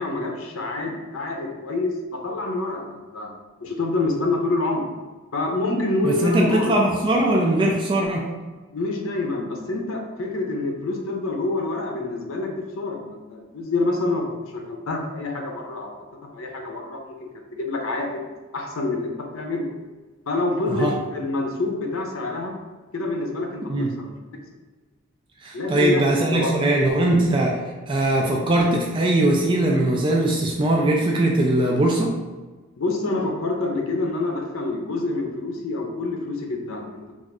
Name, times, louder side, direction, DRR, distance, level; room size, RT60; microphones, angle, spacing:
voice 1, 0.0-3.3 3.6-4.8 5.3-6.7 8.7-15.9 16.3-18.2 18.5-19.7 20.3-22.5 22.9-23.6 24.0-24.2 25.5-26.0 26.3-26.5 32.8-37.1, left 2 dB, 70° left, 2 dB, 0.6 m, -27 dB
voice 2, 6.0-8.3 20.7-20.9 23.7-23.9 25.4-27.6 27.9-32.1, right 1 dB, 25° right, -2 dB, 0.3 m, -20 dB
2.4 x 2.4 x 4.0 m, 1.3 s
head